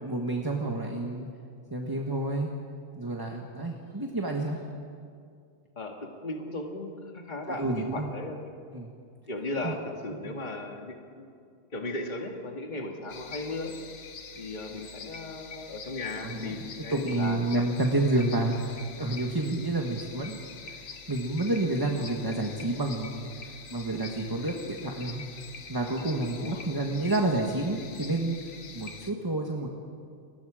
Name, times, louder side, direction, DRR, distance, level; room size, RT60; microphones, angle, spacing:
voice 1, 0.0-1.3 1.7-2.5 3.0-4.6 7.5-8.1 8.7-8.9 9.6-9.7 10.2-10.3 16.2-18.7 19.0-20.4 21.1-23.3 23.7-25.2 25.7-28.4 28.7-29.7, right 2 dB, 15° right, 1 dB, 1.5 m, -29 dB
voice 2, 6.2-8.4 9.3-11.3 11.7-13.7 14.4-17.4 26.4-26.6, left 2 dB, 35° left, 2 dB, 2.0 m, -36 dB
sound 1, 13.1-29.1, left 5 dB, 80° left, 1.6 m, -45 dB
30.0 x 21.5 x 5.0 m, 2.3 s
omnidirectional pair, 1.3 m